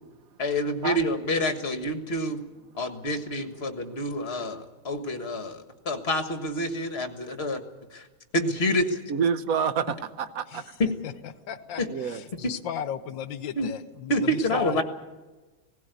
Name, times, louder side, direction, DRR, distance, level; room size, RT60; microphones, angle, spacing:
voice 1, 0.4-2.4 2.8-7.6 7.9-8.1 8.3-9.0 10.8-10.9 13.6-13.7 14.1-14.8, left 1 dB, 30° left, 1.6 m, -27 dB
voice 2, 9.1-10.6 11.9-12.2 14.4-14.6, right 7 dB, 60° right, 0.9 m, -28 dB
voice 3, 10.5-14.8, left 8 dB, 70° left, 1.4 m, -36 dB
18.0 x 16.5 x 9.3 m
omnidirectional pair, 2.4 m